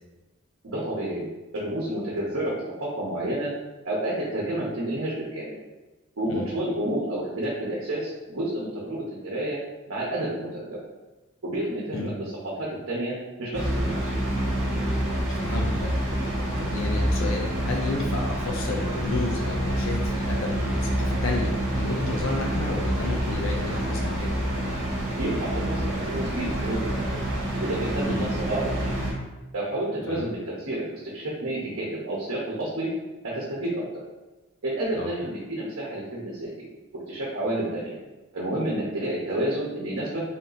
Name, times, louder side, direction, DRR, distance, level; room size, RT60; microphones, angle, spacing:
voice 1, 0.6-1.3 1.5-3.5 3.8-5.5 6.2-9.6 9.9-10.8 11.4-14.1 25.2-27.2 27.6-28.9 29.5-32.9 33.2-33.8 34.6-36.7 37.1-38.0 38.3-40.2, right 1 dB, 70° right, -5 dB, 0.9 m, -30 dB
sound 1, 13.5-29.1, right 1 dB, 50° right, 1.2 m, -27 dB
voice 2, 15.3-16.3 16.6-24.5 28.1-28.3 30.1-30.3 34.9-35.1, left 2 dB, 65° left, 1 dB, 0.5 m, -32 dB
3.6 x 2.8 x 3.9 m, 1.1 s
head